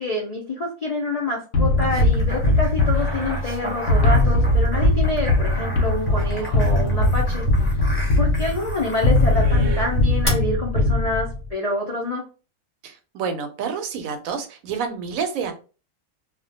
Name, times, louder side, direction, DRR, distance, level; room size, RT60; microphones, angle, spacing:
voice 1, 0.0-7.8 8.2-12.2, left 2 dB, 65° left, -1 dB, 0.3 m, -27 dB
sound 1, 1.5-11.5, left 1 dB, 90° left, 1.0 m, -20 dB
sound 2, 1.8-9.5 10.2-10.3, equal, 10° left, 0.6 m, -35 dB
sound 3, 2.9-4.6 5.9-7.6 9.2-9.9, right 4 dB, 60° right, 0.6 m, -39 dB
voice 2, 12.8-15.5, right 6 dB, 90° right, 7 dB, 1.0 m, -28 dB
2.3 x 2.1 x 2.6 m, 0.35 s
omnidirectional pair, 1.4 m